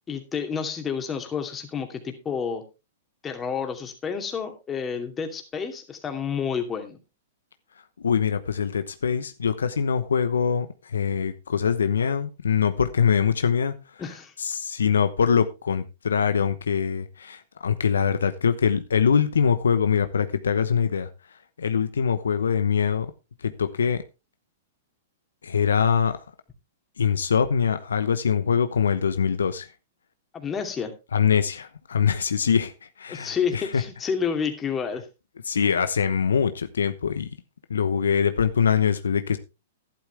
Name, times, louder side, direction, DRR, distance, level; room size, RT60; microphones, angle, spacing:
voice 1, 0.1-2.6 3.2-7.0 14.0-14.3 30.3-30.9 33.1-35.0, left 6 dB, 20° left, 2.7 m, -29 dB
voice 2, 8.0-13.7 14.4-21.1 21.6-23.1 23.4-24.0 25.4-26.2 27.0-29.7 31.1-32.7 33.0-33.6 35.5-37.3 37.7-39.4, left 7 dB, 85° left, 1.0 m, -23 dB
12.0 x 11.5 x 3.4 m
hypercardioid pair, 120°, 0 cm